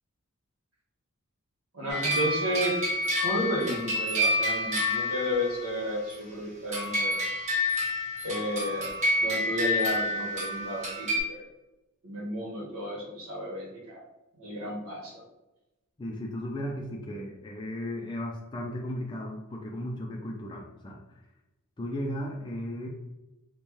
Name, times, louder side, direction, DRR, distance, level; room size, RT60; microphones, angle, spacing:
voice 1, 1.7-2.8 3.2-7.2 8.2-8.9 9.2-11.4 12.0-14.0 14.3-15.2, equal, 80° right, -5 dB, 1.3 m, -32 dB
sound 1, 1.9-6.1 6.7-11.2, left 1 dB, 35° right, 1.0 m, -29 dB
voice 2, 16.0-21.0 21.8-22.9, equal, 20° left, -1 dB, 0.4 m, -35 dB
4.4 x 2.2 x 3.0 m, 0.99 s
head